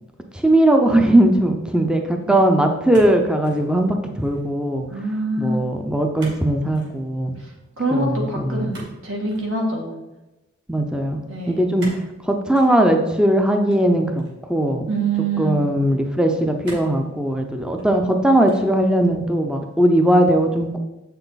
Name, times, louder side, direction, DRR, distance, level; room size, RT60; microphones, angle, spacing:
voice 1, 0.3-4.9 5.4-7.4 7.9-8.7 10.7-11.2 11.5-14.2 14.5-14.9 15.4-20.8, right 1 dB, 5° right, 4 dB, 0.5 m, -19 dB
sound 1, 2.9-3.7 4.0-4.5 6.2-6.5 6.7-7.0 8.7-9.5 11.8-12.1 12.5-12.7 13.7-14.5 15.2-15.3 16.6-17.0 17.6-18.1 18.5-18.8, right 1 dB, 55° right, 2.8 m, -39 dB
voice 2, 4.9-5.7 7.4-7.5 7.8-10.0 11.3-11.6 14.9-15.7, right 2 dB, 80° right, -1 dB, 2.4 m, -25 dB
7.9 x 6.8 x 4.0 m, 1.0 s
head